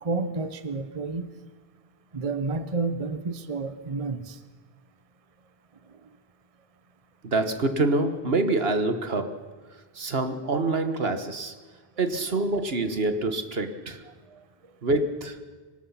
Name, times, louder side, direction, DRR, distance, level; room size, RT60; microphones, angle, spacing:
voice 1, 0.0-1.3 2.1-4.4 12.0-12.1 14.3-14.4, right 3 dB, 35° right, 10 dB, 1.0 m, -30 dB
voice 2, 7.2-9.4 9.9-11.5 12.0-14.0 14.8-15.4, right 2 dB, 70° right, 8 dB, 1.7 m, -26 dB
25.0 x 19.0 x 5.7 m, 1.4 s
omnidirectional pair, 1.0 m